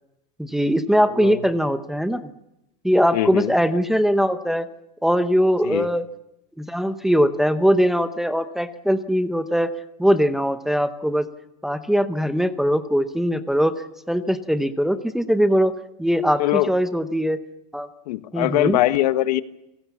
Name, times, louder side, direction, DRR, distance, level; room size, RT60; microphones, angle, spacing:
voice 1, 0.4-2.3 2.8-4.7 5.0-6.1 6.6-9.7 10.0-11.3 11.6-13.7 14.1-17.4 17.7-17.9 18.3-18.8, equal, ahead, 9 dB, 0.8 m, -21 dB
voice 2, 1.0-1.4 3.1-3.5 5.6-5.9 16.4-16.7 18.1-19.4, left 15 dB, 80° left, 12 dB, 1.4 m, -22 dB
29.0 x 19.5 x 7.2 m, 0.87 s
supercardioid pair, 170°, 21 cm